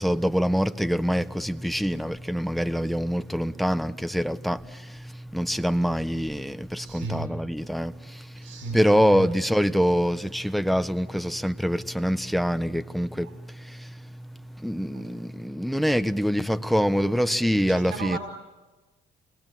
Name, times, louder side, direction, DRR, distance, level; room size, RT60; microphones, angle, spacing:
voice 1, 0.0-18.2, equal, ahead, 1.2 m, -25 dB
voice 2, 6.8-7.4 8.4-9.3 13.2-13.3 14.9-15.1 17.7-18.2, right 3 dB, 80° right, 4.9 m, -35 dB
29.0 x 21.5 x 9.3 m
cardioid pair, 90°, 20 cm